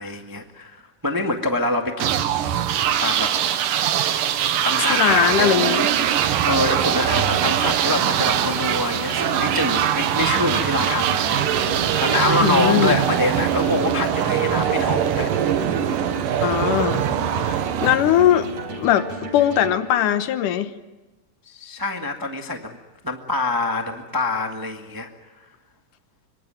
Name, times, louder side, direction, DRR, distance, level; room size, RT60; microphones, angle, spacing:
voice 1, 0.0-2.2 3.0-3.4 4.6-5.5 5.9-15.6 21.4-22.8 23.0-25.1, left 2 dB, 15° right, 4 dB, 0.7 m, -26 dB
sound 1, 2.0-18.7, right 10 dB, 85° right, 2.8 m, -22 dB
voice 2, 4.9-5.9 12.4-13.0 16.4-17.0 17.4-18.5 18.8-20.7, left 11 dB, 75° left, 11 dB, 2.6 m, -20 dB
sound 2, 6.8-19.8, right 1 dB, 55° right, 5.1 m, -35 dB
25.5 x 25.0 x 8.9 m, 1.1 s
omnidirectional pair, 3.8 m